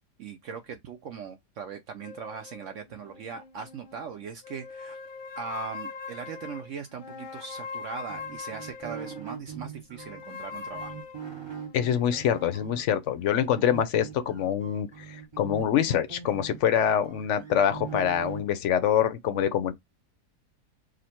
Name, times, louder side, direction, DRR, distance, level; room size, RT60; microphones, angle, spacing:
voice 1, 0.2-5.0 5.4-11.0, right 6 dB, 65° right, 0.8 m, -39 dB
sound 1, 2.0-4.0 4.4-9.3 10.0-12.6, left 5 dB, 90° left, 0.4 m, -42 dB
sound 2, 8.1-12.8 13.5-18.4, right 7 dB, 20° right, 0.9 m, -41 dB
voice 2, 11.7-19.7, left 9 dB, 65° left, 0.8 m, -25 dB
5.0 x 2.1 x 4.3 m
omnidirectional pair, 1.6 m